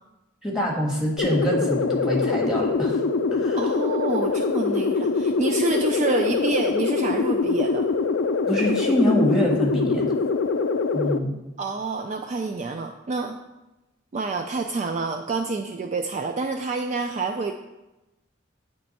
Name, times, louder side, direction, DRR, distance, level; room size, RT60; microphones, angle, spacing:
voice 1, 0.4-3.0 3.3-3.6 8.5-10.1 10.9-11.3, equal, ahead, -2 dB, 1.4 m, -24 dB
sound 1, 1.2-11.2, left 4 dB, 65° left, 0.4 m, -24 dB
voice 2, 3.6-7.9 11.6-13.4 14.1-17.5, right 3 dB, 35° right, 5 dB, 0.3 m, -28 dB
9.3 x 3.3 x 4.1 m, 1.0 s
head